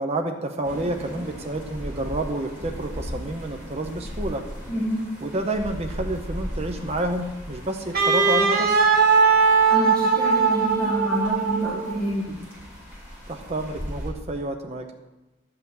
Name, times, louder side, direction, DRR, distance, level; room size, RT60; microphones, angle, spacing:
voice 1, 0.0-4.4 5.2-8.9 13.3-14.9, right 1 dB, 30° right, 4 dB, 0.8 m, -29 dB
sound 1, 0.6-14.1, equal, 10° right, 4.7 m, -38 dB
voice 2, 4.7-5.1 9.7-12.4, equal, 5° left, -8 dB, 1.9 m, -28 dB
Wind instrument woodwind instrument, 7.9-12.0, right 5 dB, 45° right, 1.4 m, -19 dB
12.0 x 5.8 x 7.9 m, 1.1 s
head